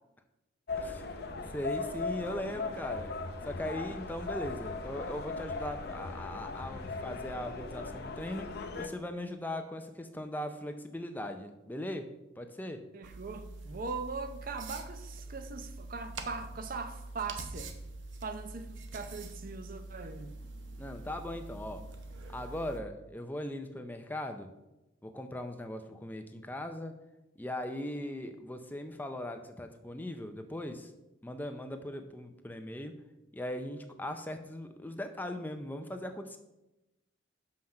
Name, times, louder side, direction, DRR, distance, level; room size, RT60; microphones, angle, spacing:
sound 1, 0.7-8.9, left 3 dB, 55° left, 0.7 m, -38 dB
voice 1, 0.8-1.2 1.5-3.1 3.5-8.5 8.8-12.1 12.4-12.8 20.8-21.8 22.3-24.5 25.0-26.9 27.4-30.9 31.2-33.0 33.3-36.4, left 1 dB, 10° left, 0.5 m, -39 dB
voice 2, 12.9-17.7 18.2-20.3, right 4 dB, 45° right, 0.6 m, -40 dB
sound 2, 13.0-22.8, right 2 dB, 70° right, 0.9 m, -45 dB
5.8 x 5.8 x 6.4 m
head